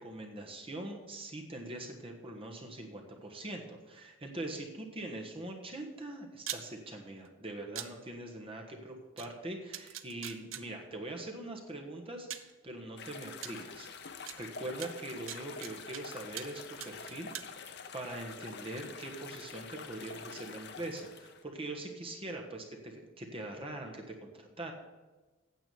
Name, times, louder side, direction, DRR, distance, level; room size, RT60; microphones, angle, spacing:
voice 1, 0.0-13.9 14.4-17.6 17.9-24.7, right 2 dB, 30° right, 2 dB, 1.3 m, -42 dB
sound 1, 6.4-6.6 7.7-7.9 9.2-9.3 9.7-10.6 11.7-11.8 12.3-12.5 13.4-13.5 14.3-14.4 14.8-16.0 16.4-16.5 16.8-17.5, right 11 dB, 80° right, 0.7 m, -41 dB
sound 2, 13.0-21.4, left 5 dB, 55° left, 0.8 m, -47 dB
9.3 x 7.4 x 6.9 m, 1.2 s
head